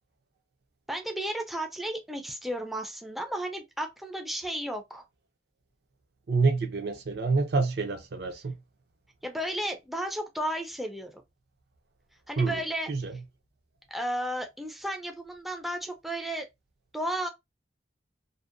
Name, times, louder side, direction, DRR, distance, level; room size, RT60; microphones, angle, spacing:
voice 1, 0.9-5.0 9.2-11.2 12.3-12.9 13.9-16.4 16.9-17.3, right 1 dB, ahead, 0.4 m, -33 dB
voice 2, 6.3-8.5 12.4-12.6 12.9-13.1, right 4 dB, 65° right, 0.5 m, -27 dB
2.6 x 2.0 x 2.4 m
head